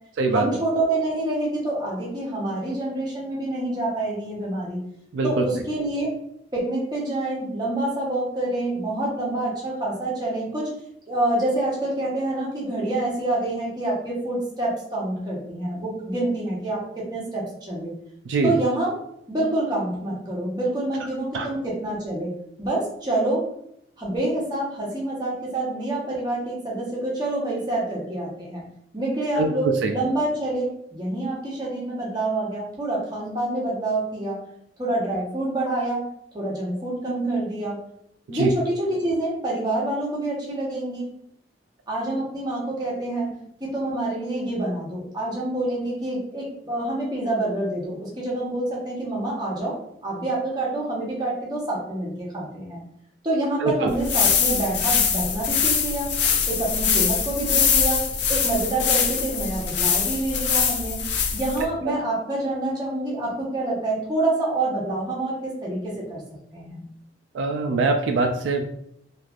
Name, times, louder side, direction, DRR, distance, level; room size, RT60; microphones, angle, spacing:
voice 1, 0.3-4.8 5.2-6.1 6.5-10.7 11.1-17.9 18.4-19.0 19.3-22.3 22.6-23.4 24.0-28.6 28.9-34.4 34.8-36.0 36.3-37.8 38.3-41.1 41.9-43.3 43.6-52.8 53.2-56.1 56.5-58.0 58.3-61.0 61.3-66.2 66.5-66.8, right 2 dB, 20° right, -5 dB, 1.0 m, -27 dB
voice 2, 37.1-37.4 38.4-38.5 53.6-53.9 67.3-68.8, right 3 dB, 75° right, 4 dB, 0.3 m, -23 dB
sound 1, 53.9-61.6, left 6 dB, 70° left, 0.5 m, -23 dB
3.2 x 2.5 x 2.4 m, 0.72 s
head